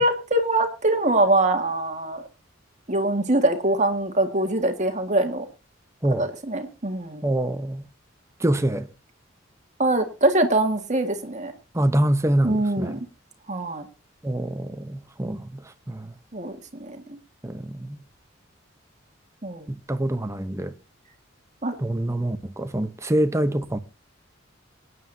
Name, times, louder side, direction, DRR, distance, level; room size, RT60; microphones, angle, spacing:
voice 1, 0.0-2.2 2.9-5.5 6.2-7.3 9.8-11.5 12.4-13.0 13.5-13.9 16.3-17.2 19.4-19.6 21.6-21.7, right 2 dB, 35° right, 1.8 m, -23 dB
voice 2, 7.2-7.8 8.4-8.9 11.7-12.9 14.2-16.1 17.4-18.0 19.7-20.7 21.8-23.8, right 1 dB, 15° right, 0.8 m, -25 dB
24.0 x 9.5 x 2.7 m
head